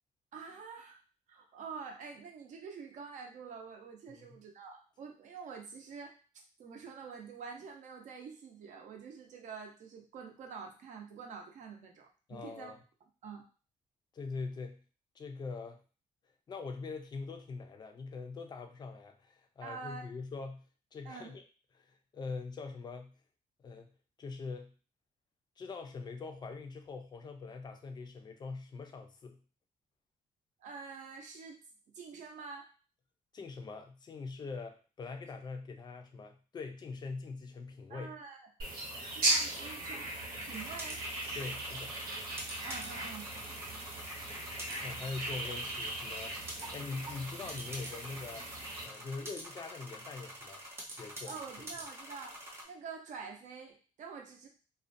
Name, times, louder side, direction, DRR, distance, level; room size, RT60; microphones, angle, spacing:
voice 1, 0.3-1.0 1.3-6.2 6.6-12.7 13.2-13.4 19.6-20.0 21.0-21.3 30.6-31.6 31.9-32.7 37.9-38.5 39.1-41.0 42.6-43.3 51.3-52.4 52.6-54.5, right 5 dB, 60° right, 3 dB, 0.6 m, -47 dB
voice 2, 12.3-12.8 14.1-14.8 15.2-15.8 16.5-20.6 20.9-21.4 21.8-23.1 23.6-23.9 24.2-24.7 25.6-29.4 33.3-38.1 41.3-41.9 44.3-44.4 44.8-48.5 48.8-50.6 50.9-51.4, left 4 dB, 30° left, 5 dB, 0.4 m, -43 dB
sound 1, 38.6-48.9, right 2 dB, 85° right, 0.9 m, -38 dB
sound 2, 40.5-52.6, right 1 dB, 15° right, 0.6 m, -47 dB
2.4 x 2.1 x 2.5 m, 0.36 s
cardioid pair, 150°, 14 cm